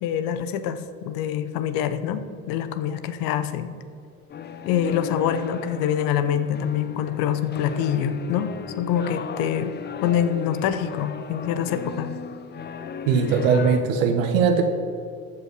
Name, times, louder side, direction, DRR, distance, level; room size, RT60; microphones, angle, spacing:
voice 1, 0.0-3.7 4.7-9.7 10.0-12.1, left 9 dB, 55° left, 11 dB, 0.9 m, -25 dB
sound 1, 4.3-13.8, left 5 dB, 25° left, 0.7 m, -36 dB
voice 2, 13.1-14.6, right 6 dB, 70° right, 5 dB, 1.2 m, -20 dB
14.0 x 5.5 x 6.1 m, 2.4 s
hypercardioid pair, 75°, 41 cm